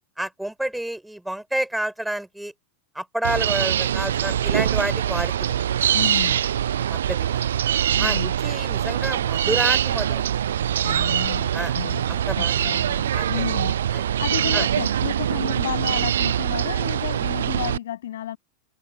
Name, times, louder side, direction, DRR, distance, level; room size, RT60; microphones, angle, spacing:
voice 1, 0.2-2.5 2.9-5.6 6.9-7.5 8.0-10.2 10.9-11.1 11.5-11.7 12.1-12.5 13.1-13.4 13.9-14.0 14.5-14.7, right 1 dB, 5° right, 5.1 m, -29 dB
sound 1, 3.2-17.8, right 10 dB, 65° right, 0.3 m, -23 dB
voice 2, 5.9-6.4 7.9-8.3 10.8-13.8 14.2-18.4, left 12 dB, 60° left, 7.4 m, -32 dB
open air
figure-of-eight pair, 90°, 0 cm